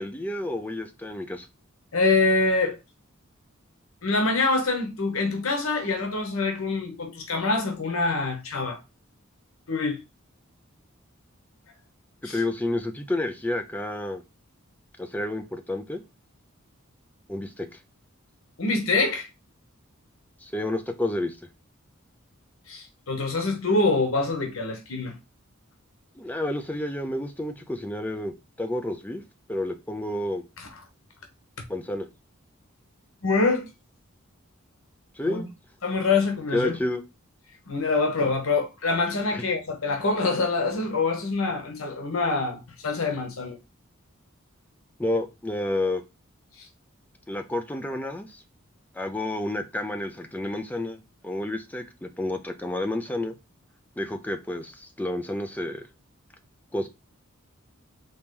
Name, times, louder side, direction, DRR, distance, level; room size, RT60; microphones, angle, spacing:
voice 1, 0.0-1.5 12.3-14.2 15.0-16.0 17.3-17.7 20.4-21.4 26.2-29.2 29.5-30.4 31.7-32.1 35.2-35.5 36.5-37.0 39.3-39.4 45.0-46.0 47.3-48.3 49.0-53.3 54.0-55.8 56.7-56.9, left 1 dB, 10° left, 0.5 m, -30 dB
voice 2, 1.9-2.8 4.0-8.8 9.7-10.0 12.2-12.4 18.6-19.3 22.7-25.1 30.6-30.7 33.2-33.7 35.2-35.4 35.8-36.8 37.7-43.6, left 3 dB, 85° left, 1.0 m, -25 dB
4.0 x 3.0 x 3.6 m
head